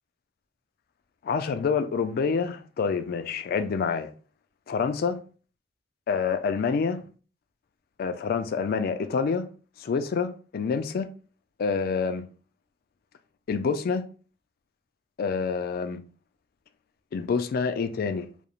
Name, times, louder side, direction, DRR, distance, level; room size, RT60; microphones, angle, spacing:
voice 1, 1.2-4.1 4.7-5.2 6.1-7.0 8.0-9.5 9.8-11.1 11.6-12.3 13.5-14.0 15.2-16.0 17.1-18.3, left 5 dB, 55° left, 0.3 m, -27 dB
2.4 x 2.0 x 2.9 m
head